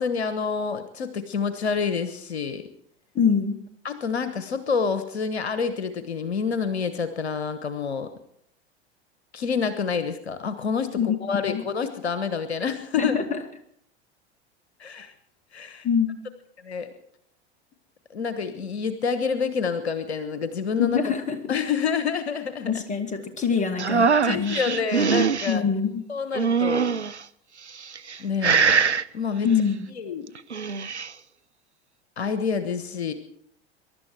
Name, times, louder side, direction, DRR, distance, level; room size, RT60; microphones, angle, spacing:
voice 1, 0.0-2.6 3.8-8.1 9.3-13.1 14.8-15.1 15.5-15.9 16.6-16.9 18.1-21.1 21.5-22.8 24.2-25.6 26.1-26.9 28.2-28.8 29.1-29.5 29.9-30.3 32.2-33.1, left 5 dB, 70° left, 11 dB, 1.3 m, -28 dB
voice 2, 3.1-3.6 11.0-11.6 13.0-13.2 15.8-16.1 20.8-21.5 22.7-24.8 25.5-26.0 29.4-29.9, left 6 dB, 20° left, 6 dB, 2.4 m, -24 dB
sound 1, 23.8-25.5 26.3-27.2 27.8-28.2 28.4-29.0 30.4-31.1, right 5 dB, 90° right, 0.5 m, -22 dB
22.5 x 12.0 x 4.8 m, 0.70 s
figure-of-eight pair, 80°, 33 cm